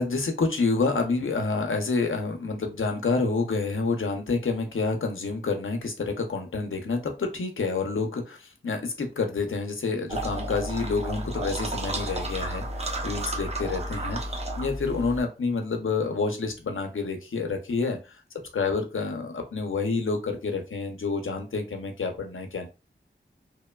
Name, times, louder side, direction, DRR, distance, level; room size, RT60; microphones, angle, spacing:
voice 1, 0.0-18.2 18.5-22.7, left 4 dB, 85° left, 4 dB, 0.6 m, -28 dB
sound 1, 10.1-15.2, right 1 dB, 30° right, 0.6 m, -32 dB
2.9 x 2.1 x 2.2 m, 0.29 s
wide cardioid pair, 40°, 20 cm